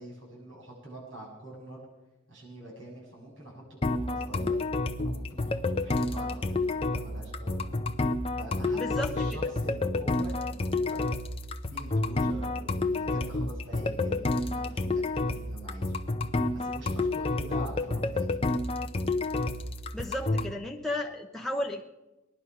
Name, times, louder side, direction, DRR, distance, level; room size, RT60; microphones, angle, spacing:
voice 1, 0.0-1.8 2.3-4.6 5.0-5.6 5.8-7.7 8.4-11.0 11.7-16.0 16.5-18.4, right 1 dB, 75° right, -3 dB, 7.2 m, -45 dB
sound 1, 3.8-20.5, left 2 dB, 30° left, 0.7 m, -29 dB
voice 2, 8.7-9.1 19.9-21.8, left 1 dB, ahead, 0 dB, 0.9 m, -33 dB
19.0 x 11.0 x 5.9 m, 1.0 s
head